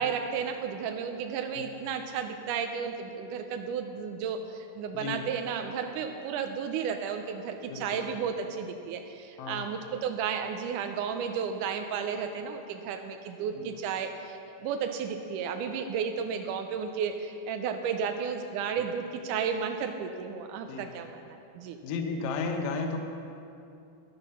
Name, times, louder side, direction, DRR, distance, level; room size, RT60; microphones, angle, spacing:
voice 1, 0.0-21.8, right 6 dB, 85° right, 5 dB, 1.8 m, -33 dB
voice 2, 7.7-8.0 9.4-9.7 13.6-13.8 18.8-18.9 20.7-21.0 21.8-23.0, left 4 dB, 70° left, 4 dB, 2.5 m, -34 dB
14.0 x 11.0 x 5.6 m, 2.6 s
omnidirectional pair, 4.5 m